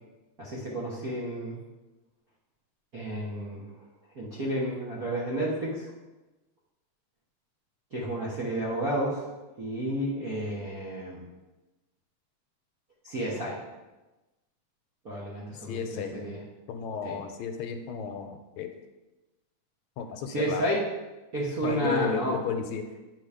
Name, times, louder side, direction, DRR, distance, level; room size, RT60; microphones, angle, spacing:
voice 1, 0.4-1.6 2.9-3.6 4.2-5.8 7.9-9.2 9.6-11.2 13.1-13.6 15.0-15.8 16.1-16.4 17.0-17.1 20.3-20.8 21.3-22.3, right 1 dB, 50° right, -7 dB, 1.0 m, -31 dB
voice 2, 15.7-16.3 16.7-18.7 20.0-20.7 21.6-22.9, left 6 dB, 80° left, 6 dB, 1.9 m, -33 dB
8.4 x 3.9 x 5.0 m, 1.1 s
omnidirectional pair, 3.3 m